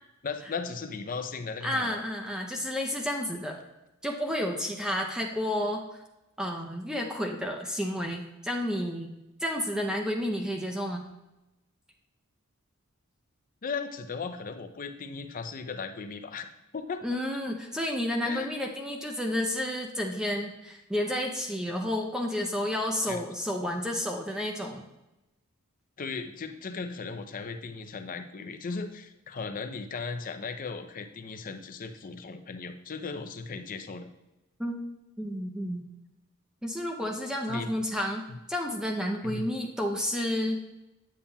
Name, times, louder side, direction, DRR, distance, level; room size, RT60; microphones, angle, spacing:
voice 1, 0.2-2.0 13.6-16.5 16.7-17.0 18.2-18.5 23.1-23.2 26.0-34.1 37.5-37.7 38.3-38.4 39.2-39.5, left 4 dB, 40° left, 7 dB, 0.5 m, -37 dB
voice 2, 1.6-3.6 4.0-6.0 6.4-9.1 9.4-11.1 17.0-24.8 34.6-34.8 35.2-35.8 36.6-38.2 38.5-40.6, left 1 dB, 5° right, 2 dB, 0.5 m, -31 dB
8.5 x 7.0 x 2.3 m, 0.98 s
head